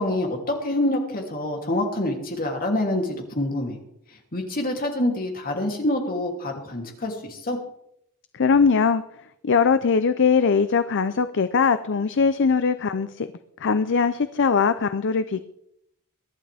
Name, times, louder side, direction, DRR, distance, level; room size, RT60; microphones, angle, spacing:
voice 1, 0.0-3.8 4.3-7.6, left 1 dB, 40° left, 1 dB, 2.9 m, -26 dB
voice 2, 8.3-9.0 9.4-13.3 13.6-15.4, left 5 dB, 55° left, 12 dB, 0.6 m, -21 dB
23.0 x 11.0 x 3.5 m, 0.75 s
head